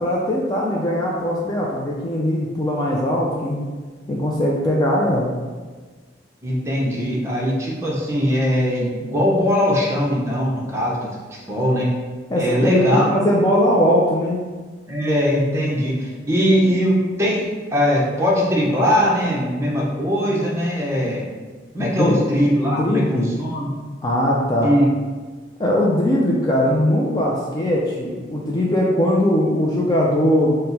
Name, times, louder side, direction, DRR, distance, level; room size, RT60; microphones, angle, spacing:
voice 1, 0.0-3.6 4.1-5.3 12.3-14.4 21.8-22.2 22.6-23.3 24.0-24.7 25.6-30.5, left 1 dB, 20° left, -4 dB, 0.4 m, -20 dB
voice 2, 6.4-11.1 11.4-11.9 12.4-13.1 14.9-21.2 21.7-23.7 24.6-24.9, equal, 15° right, -4 dB, 0.7 m, -20 dB
4.3 x 2.1 x 3.9 m, 1.4 s
head